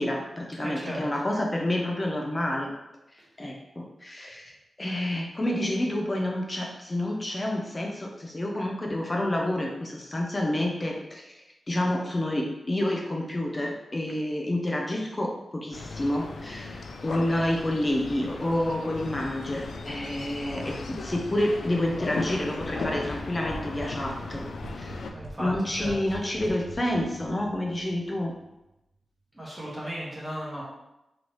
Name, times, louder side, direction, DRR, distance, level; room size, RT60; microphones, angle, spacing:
voice 1, 0.0-2.7 3.4-4.5 4.8-24.5 24.7-25.1 25.4-28.4, left 1 dB, 25° left, 0 dB, 0.5 m, -29 dB
voice 2, 0.6-1.0 3.2-3.3 25.1-25.9 29.3-30.6, equal, 10° right, -7 dB, 1.2 m, -35 dB
sound 1, 15.7-25.1, left 3 dB, 75° left, 0.4 m, -36 dB
sound 2, 19.9-28.5, right 2 dB, 75° right, 0.8 m, -45 dB
3.9 x 3.1 x 3.1 m, 0.93 s
wide cardioid pair, 110°, 0 cm